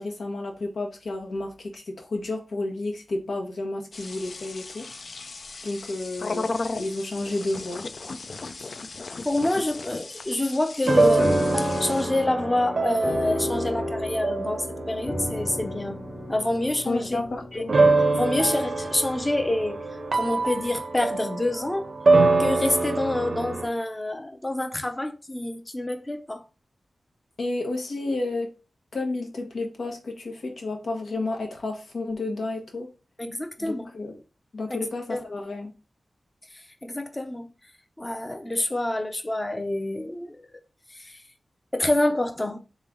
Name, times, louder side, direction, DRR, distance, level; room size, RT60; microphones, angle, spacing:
voice 1, 0.0-4.8 5.6-7.9 16.9-17.7 27.4-28.5 28.9-32.9 33.6-34.2 34.5-35.7, left 2 dB, 85° left, 1.1 m, -31 dB
sound 1, 3.9-12.1, left 3 dB, 60° left, 0.3 m, -36 dB
voice 2, 9.2-16.0 16.3-17.2 17.5-17.6 18.2-19.8 20.1-21.9 22.4-26.4 33.2-33.9 34.7-34.8 35.1-35.2 36.5-37.5 38.0-40.5 40.9-41.2 41.7-42.6, left 1 dB, 20° left, 0.6 m, -27 dB
sound 2, 10.9-17.2 17.7-23.7, right 3 dB, 50° right, 0.6 m, -25 dB
sound 3, 11.2-19.9, left 1 dB, 35° left, 1.1 m, -33 dB
3.7 x 3.2 x 3.8 m
wide cardioid pair, 100°, 0 cm